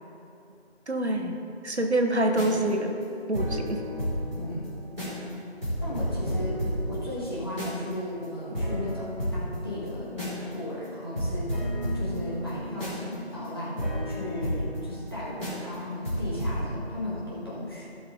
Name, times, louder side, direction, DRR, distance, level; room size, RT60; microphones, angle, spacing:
voice 1, 0.9-1.4 1.6-2.9 3.3-3.8, right 1 dB, 75° right, 3 dB, 1.3 m, -26 dB
sound 1, 2.2-4.3 4.6-4.7 5.0-5.3 5.6-7.9 8.2-8.3 8.5-10.5 10.8-10.9 11.1-15.1 15.4-15.7 16.0-16.6, equal, ahead, 2.2 m, -31 dB
voice 2, 4.3-4.7 5.8-6.6 6.9-11.7 11.9-17.8, left 1 dB, 20° left, -9 dB, 1.7 m, -36 dB
16.0 x 6.1 x 3.9 m, 2.8 s
figure-of-eight pair, 170°, 34 cm